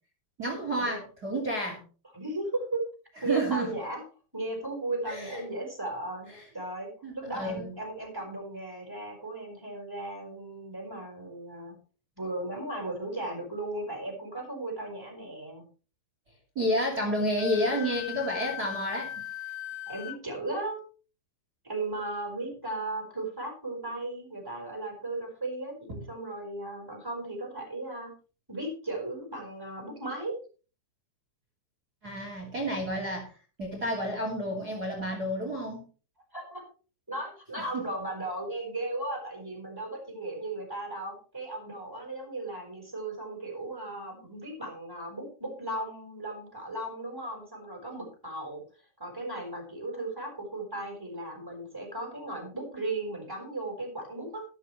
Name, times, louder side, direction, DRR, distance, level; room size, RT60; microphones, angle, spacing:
voice 1, 0.4-1.8 3.2-3.7 5.1-5.4 7.0-7.7 16.5-19.1 32.0-33.3 33.6-35.8 37.7-37.8, equal, 25° right, 1 dB, 2.4 m, -30 dB
voice 2, 2.1-2.8 3.2-4.0 4.3-11.8 12.2-15.6 19.9-20.8 21.6-28.1 28.5-30.4 36.3-36.6 37.1-48.6 49.0-54.4, right 2 dB, 5° right, 1 dB, 4.2 m, -36 dB
Wind instrument woodwind instrument, 17.4-20.2, left 12 dB, 85° left, 2.2 m, -39 dB
13.0 x 12.5 x 3.2 m, 0.36 s
omnidirectional pair, 5.3 m